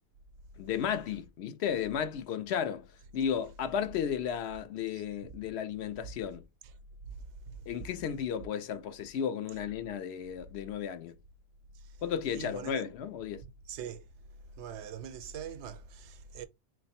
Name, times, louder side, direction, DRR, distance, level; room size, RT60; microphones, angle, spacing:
voice 1, 0.6-2.9 3.1-6.4 7.7-11.1 12.0-13.4, left 8 dB, 75° left, 0.8 m, -34 dB
voice 2, 12.3-12.8 13.4-14.1 14.5-16.5, right 8 dB, 90° right, 0.9 m, -43 dB
3.1 x 2.5 x 4.2 m
omnidirectional pair, 1.1 m